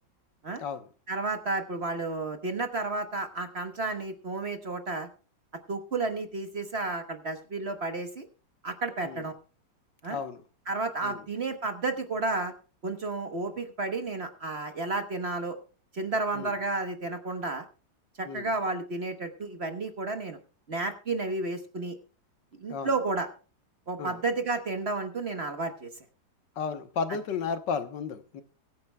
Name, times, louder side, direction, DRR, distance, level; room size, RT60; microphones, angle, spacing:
voice 1, 1.1-5.1 5.7-8.2 8.6-9.3 10.0-10.2 10.7-12.5 12.8-15.6 15.9-17.6 18.2-20.4 20.7-21.9 22.6-23.3 23.9-25.9, right 3 dB, 40° right, 1.2 m, -32 dB
voice 2, 10.1-10.4 11.0-11.2 16.3-16.5 18.2-18.5 22.7-22.9 24.0-24.2 26.6-28.4, left 6 dB, 75° left, 1.7 m, -33 dB
23.0 x 9.4 x 2.2 m
omnidirectional pair, 2.0 m